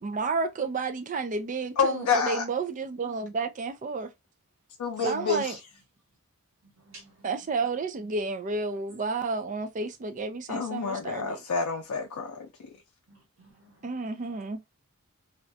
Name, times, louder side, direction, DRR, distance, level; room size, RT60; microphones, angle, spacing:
voice 1, 0.0-4.1 5.0-5.6 7.2-11.4 13.8-14.6, right 4 dB, 35° right, 0.3 m, -31 dB
voice 2, 1.8-2.4 4.8-5.6 10.5-12.7, left 5 dB, 90° left, 0.4 m, -28 dB
voice 3, 6.6-7.7 13.1-13.9, right 2 dB, 70° right, 1.3 m, -54 dB
2.4 x 2.2 x 2.5 m
head